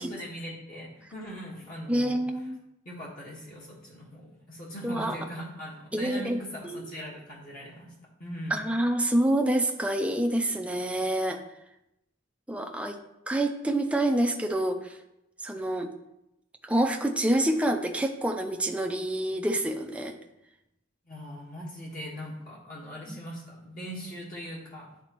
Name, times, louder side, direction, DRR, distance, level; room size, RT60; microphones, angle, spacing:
voice 1, 0.1-2.2 2.8-7.9 8.2-8.6 21.0-24.9, equal, 45° left, -5 dB, 1.5 m, -40 dB
voice 2, 1.9-2.6 4.8-5.2 5.9-6.8 8.5-11.4 12.5-13.0 13.3-15.0 15.4-15.9 16.6-20.2 23.1-23.2, right 1 dB, 5° right, 4 dB, 0.5 m, -27 dB
9.9 x 4.0 x 3.0 m, 0.88 s
head